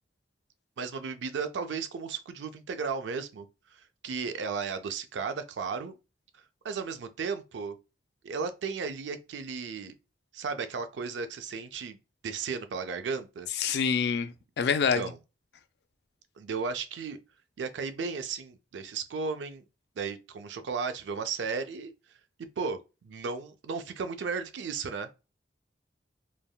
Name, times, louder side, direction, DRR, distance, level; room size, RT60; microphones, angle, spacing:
voice 1, 0.8-3.5 3.7-6.0 6.6-7.8 8.2-9.9 10.3-12.0 12.2-13.5 14.9-15.2 16.4-17.2 17.6-19.6 20.0-21.9 22.4-25.1, right 5 dB, 90° right, 0.4 m, -34 dB
voice 2, 13.6-15.0, left 6 dB, 70° left, 0.3 m, -26 dB
3.3 x 2.2 x 2.2 m
head